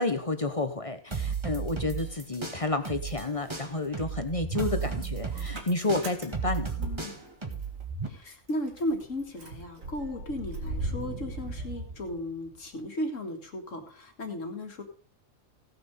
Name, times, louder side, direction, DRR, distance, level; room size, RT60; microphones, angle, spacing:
voice 1, 0.0-6.8, left 2 dB, 30° left, 8 dB, 0.9 m, -30 dB
sound 1, 1.1-3.2 3.5-8.1, right 6 dB, 20° right, 1.6 m, -33 dB
Motor vehicle (road) / Engine starting, 1.7-2.9 3.2-7.8 8.2-8.3 8.5-12.6, right 2 dB, 80° right, 2.4 m, -39 dB
voice 2, 4.6-5.1 6.8-7.1 8.1-14.8, left 1 dB, 70° left, 4 dB, 2.3 m, -35 dB
17.0 x 6.1 x 5.3 m, 0.41 s
omnidirectional pair, 1.4 m